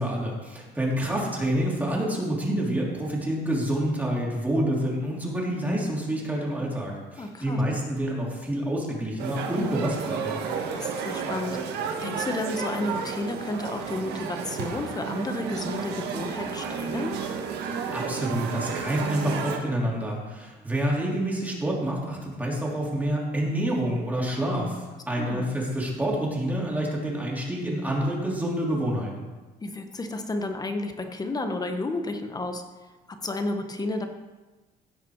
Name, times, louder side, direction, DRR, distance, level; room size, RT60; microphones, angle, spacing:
voice 1, 0.0-10.4 17.9-29.2, right 1 dB, 10° right, -3 dB, 3.2 m, -28 dB
voice 2, 7.2-7.6 10.7-11.6 12.0-17.1 25.2-25.5 29.6-32.6 33.2-34.1, left 2 dB, 20° left, 6 dB, 1.3 m, -31 dB
sound 1, 9.2-19.6, right 6 dB, 80° right, 1.6 m, -32 dB
16.5 x 5.9 x 4.7 m, 1.2 s
cardioid pair, 110°, 17 cm